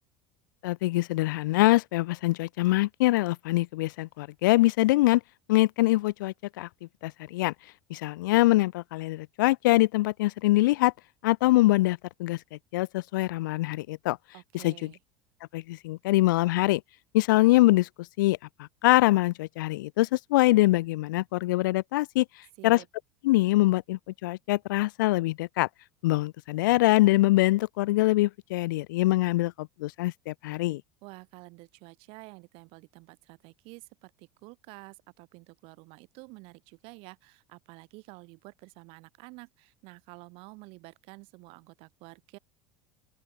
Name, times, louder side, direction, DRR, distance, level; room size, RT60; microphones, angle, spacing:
voice 1, 0.6-5.2 5.5-6.7 7.0-7.5 7.9-10.9 11.2-12.4 12.7-14.2 14.5-14.9 15.5-16.8 17.1-17.9 18.2-22.2 22.6-22.8 23.2-25.7 26.0-30.8, left 19 dB, 65° left, 0.9 m, -24 dB
voice 2, 14.3-15.0 22.6-22.9 31.0-42.4, right 27 dB, 55° right, 8.0 m, -49 dB
open air
figure-of-eight pair, 70°, 11 cm